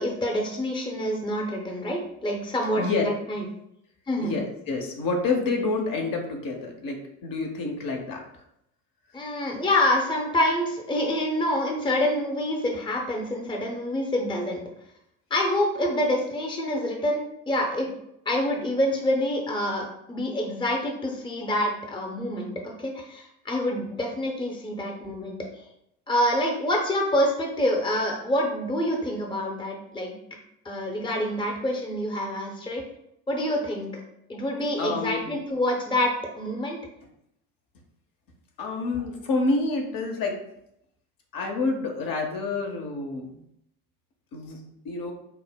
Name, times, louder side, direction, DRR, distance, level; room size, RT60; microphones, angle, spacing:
voice 1, 0.0-3.4 4.1-4.4 9.1-14.6 15.3-17.9 18.3-25.4 26.1-30.1 30.6-32.8 33.3-34.0 34.3-36.8, left 1 dB, 10° left, 1 dB, 0.7 m, -27 dB
voice 2, 4.2-8.2 34.8-35.3 38.6-40.4 41.3-43.4 44.3-44.6 44.8-45.1, left 3 dB, 50° left, 1 dB, 0.8 m, -28 dB
5.4 x 2.0 x 2.2 m, 0.78 s
hypercardioid pair, 60°, 44 cm